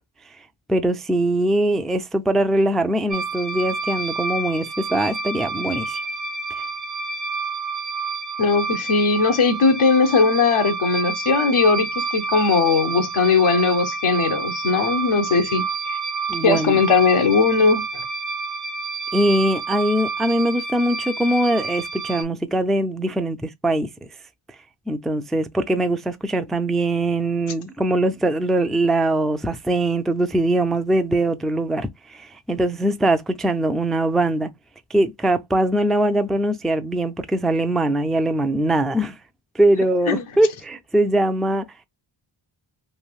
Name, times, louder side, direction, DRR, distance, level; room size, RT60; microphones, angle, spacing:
voice 1, 0.7-6.0 16.3-16.8 19.1-23.9 24.9-34.5 34.9-39.2 39.5-41.6, right 1 dB, ahead, 0.3 m, -22 dB
sound 1, 3.1-22.2, right 4 dB, 35° right, 0.6 m, -29 dB
voice 2, 8.4-16.0 16.4-17.9 40.1-40.2, left 4 dB, 80° left, 0.9 m, -19 dB
3.2 x 2.7 x 2.3 m
wide cardioid pair, 80°, 49 cm